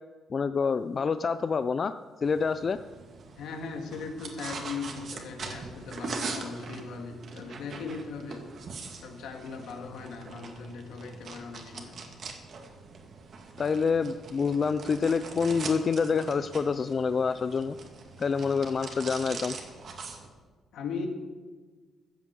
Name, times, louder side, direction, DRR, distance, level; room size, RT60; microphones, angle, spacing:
voice 1, 0.3-1.9 2.2-2.8 13.6-17.8 18.2-19.6, left 5 dB, 40° left, 11 dB, 0.4 m, -27 dB
sound 1, 2.2-20.3, right 4 dB, 55° right, 2.1 m, -42 dB
voice 2, 3.4-8.5 9.0-12.0 20.7-21.1, left 5 dB, 80° left, 3 dB, 2.0 m, -39 dB
14.0 x 7.1 x 8.3 m, 1.4 s
cardioid pair, 90°, 0 cm